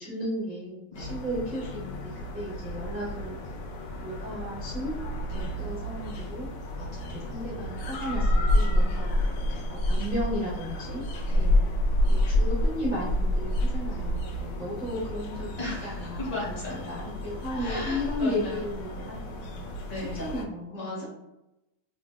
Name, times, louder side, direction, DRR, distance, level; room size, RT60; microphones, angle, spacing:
voice 1, 0.0-3.4 4.0-5.0 5.3-6.5 7.1-9.2 9.7-11.0 11.3-11.6 12.1-15.5 15.8-19.7 20.1-20.8, left 1 dB, 15° right, -8 dB, 0.3 m, -34 dB
sound 1, 0.9-20.5, left 1 dB, 75° left, 1.1 m, -29 dB
voice 2, 6.7-7.2 9.5-9.6 11.3-11.5 15.6-16.8 17.5-18.7 19.9-20.2 20.7-21.0, left 2 dB, 50° left, -6 dB, 1.4 m, -36 dB
3.4 x 2.4 x 2.2 m, 0.91 s
omnidirectional pair, 2.1 m